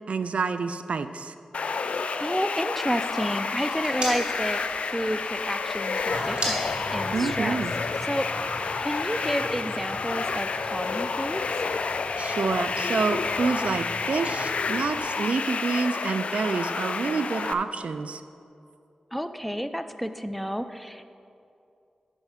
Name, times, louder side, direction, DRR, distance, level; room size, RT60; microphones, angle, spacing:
voice 1, 0.1-1.3 7.1-7.7 12.2-18.2, right 4 dB, 70° right, 10 dB, 0.3 m, -28 dB
sound 1, 1.5-17.5, left 4 dB, 70° left, 0.3 m, -30 dB
voice 2, 1.8-7.6 8.1-11.4 19.1-21.0, equal, 5° left, 10 dB, 0.4 m, -31 dB
sound 2, 2.7-7.8, right 1 dB, 40° right, 2.1 m, -38 dB
sound 3, 6.1-15.0, equal, 20° right, 1.4 m, -40 dB
10.5 x 4.9 x 5.6 m, 2.6 s
wide cardioid pair, 65°, 2 cm